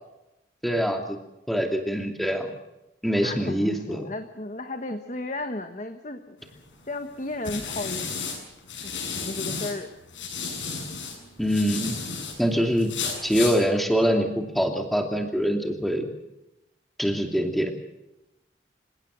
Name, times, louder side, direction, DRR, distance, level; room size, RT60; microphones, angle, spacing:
voice 1, 0.6-1.2 1.5-2.5 3.0-4.0 11.4-11.9 12.4-12.9 13.2-16.0 17.0-17.7, equal, ahead, 3 dB, 2.7 m, -24 dB
voice 2, 3.2-6.4 6.8-8.1 8.8-9.9, left 2 dB, 40° left, 6 dB, 1.3 m, -34 dB
sound 1, 6.5-9.7 10.1-12.4 12.8-13.6, left 5 dB, 90° left, 7.4 m, -33 dB
28.0 x 17.0 x 6.4 m, 0.93 s
head